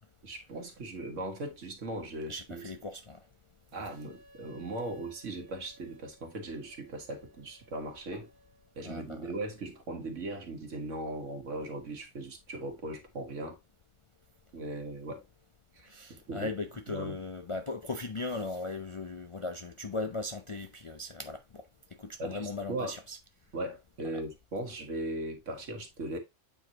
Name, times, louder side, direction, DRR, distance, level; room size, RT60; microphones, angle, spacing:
voice 1, 0.2-2.7 3.7-8.3 8.8-13.6 14.5-15.2 15.7-16.5 16.9-17.2 22.2-22.9 23.5-26.2, right 2 dB, 70° right, 1.8 m, -38 dB
voice 2, 2.3-3.2 3.8-3.9 8.1-8.2 8.8-9.3 15.8-21.6 22.0-23.2 24.1-24.2, left 3 dB, 40° left, 0.4 m, -38 dB
Wind instrument woodwind instrument, 3.8-8.8, right 1 dB, 35° right, 2.0 m, -60 dB
8.0 x 4.6 x 2.8 m
omnidirectional pair, 1.3 m